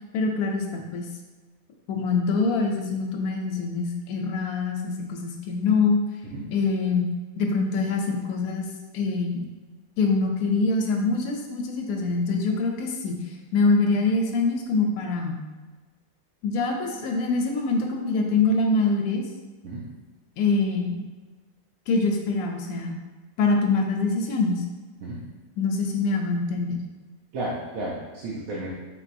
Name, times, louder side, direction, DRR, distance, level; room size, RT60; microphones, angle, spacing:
voice 1, 0.1-1.1 1.9-6.0 6.5-7.1 7.4-8.7 8.9-9.4 10.0-13.2 13.5-15.4 16.4-19.2 20.4-21.0 21.9-23.0 23.4-24.6 25.6-26.8, left 3 dB, 85° left, 1 dB, 1.1 m, -24 dB
voice 2, 27.3-28.7, right 1 dB, 75° right, -5 dB, 1.1 m, -32 dB
4.6 x 3.5 x 2.5 m, 1.3 s
omnidirectional pair, 1.5 m